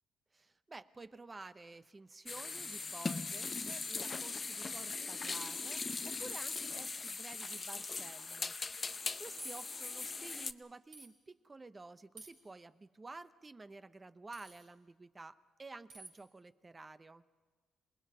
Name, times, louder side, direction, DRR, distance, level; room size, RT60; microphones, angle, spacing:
voice 1, 0.3-17.2, right 3 dB, 25° right, 13 dB, 0.8 m, -52 dB
sound 1, 2.3-10.5, left 4 dB, 30° left, 0.7 m, -40 dB
sound 2, 7.5-7.8 8.4-8.6 8.9-9.0 9.4-10.0 10.9-11.1 12.2-12.5 14.3-14.7 15.9-16.2, right 2 dB, 75° right, 4.3 m, -53 dB
27.5 x 20.0 x 5.6 m, 1.5 s
cardioid pair, 90°, 0 cm